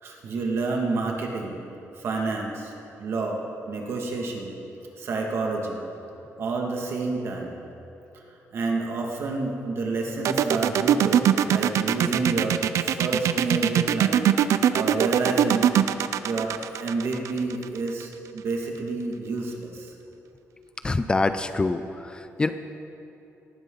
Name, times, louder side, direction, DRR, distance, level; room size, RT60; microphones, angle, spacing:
voice 1, 0.0-1.6 2.0-2.7 3.0-4.5 5.0-5.9 6.4-7.5 8.1-8.2 8.5-14.3 14.7-15.7 16.2-19.9, right 3 dB, 55° right, 0 dB, 2.0 m, -29 dB
sound 1, 10.2-18.0, right 10 dB, 70° right, 0.5 m, -21 dB
voice 2, 20.8-22.5, left 3 dB, 15° left, 10 dB, 0.4 m, -25 dB
18.5 x 15.0 x 3.9 m, 2.9 s
cardioid pair, 155°, 5 cm